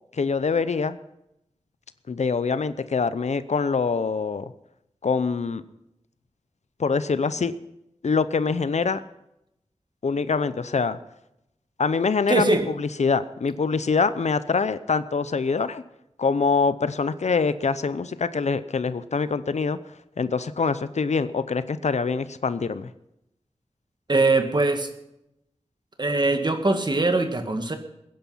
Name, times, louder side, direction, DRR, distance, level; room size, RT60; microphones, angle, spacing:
voice 1, 0.1-1.0 2.1-4.5 5.0-5.6 6.8-7.5 8.0-9.0 10.0-11.0 11.8-15.8 16.2-19.8 20.2-22.9, left 5 dB, 75° left, 14 dB, 0.7 m, -24 dB
voice 2, 12.3-12.6 24.1-24.9 26.0-27.8, right 2 dB, 40° right, 6 dB, 1.8 m, -21 dB
21.0 x 10.5 x 5.6 m, 0.84 s
wide cardioid pair, 80°, 12 cm